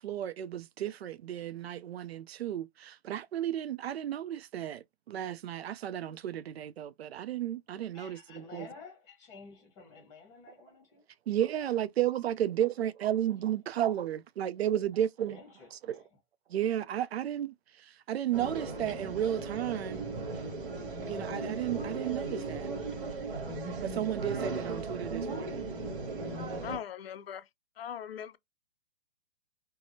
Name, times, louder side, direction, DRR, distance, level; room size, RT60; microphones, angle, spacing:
voice 1, 0.0-8.7 11.3-15.4 15.7-16.0 16.5-17.5 18.1-20.0 21.1-22.7 23.7-25.6, right 11 dB, 80° right, 0.5 m, -33 dB
voice 2, 7.9-11.0 15.3-16.1, left 4 dB, 10° left, 0.8 m, -51 dB
sound 1, 18.3-26.8, right 3 dB, 60° right, 2.0 m, -37 dB
voice 3, 26.6-27.4 27.8-28.4, left 9 dB, 70° left, 0.5 m, -40 dB
4.7 x 2.1 x 2.6 m
hypercardioid pair, 170°, 31 cm